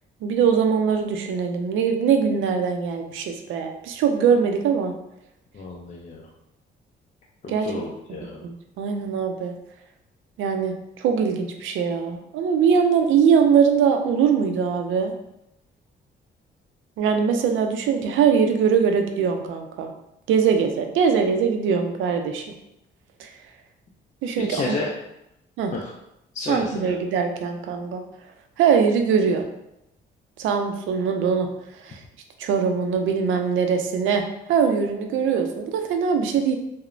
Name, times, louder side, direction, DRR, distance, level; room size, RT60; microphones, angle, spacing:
voice 1, 0.2-4.9 7.5-7.7 8.4-9.6 10.4-15.1 17.0-19.9 20.3-22.4 23.2-23.3 24.2-24.8 25.6-25.7 26.5-28.0 28.6-29.5 30.4-31.5 31.8-32.0 32.4-34.2 34.5-36.6, right 6 dB, 80° right, 5 dB, 0.4 m, -22 dB
voice 2, 5.5-6.3 7.4-8.4 24.4-24.9 25.7-25.9 26.3-27.0, left 3 dB, 40° left, -2 dB, 0.4 m, -31 dB
2.9 x 2.0 x 2.5 m, 0.86 s
cardioid pair, 90°, 20 cm